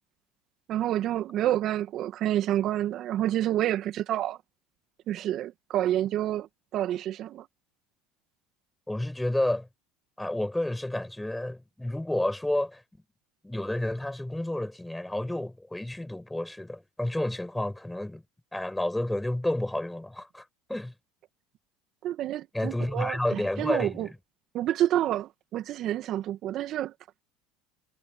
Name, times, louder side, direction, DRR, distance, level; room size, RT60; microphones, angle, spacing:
voice 1, 0.7-4.4 5.1-6.5 6.7-7.5 22.0-24.1 24.5-26.9, right 12 dB, 55° right, 1.7 m, -28 dB
voice 2, 8.9-9.7 10.2-12.8 13.4-18.2 18.5-20.9 22.5-24.1, left 1 dB, 5° left, 5.7 m, -30 dB
hypercardioid pair, 80°, 0 cm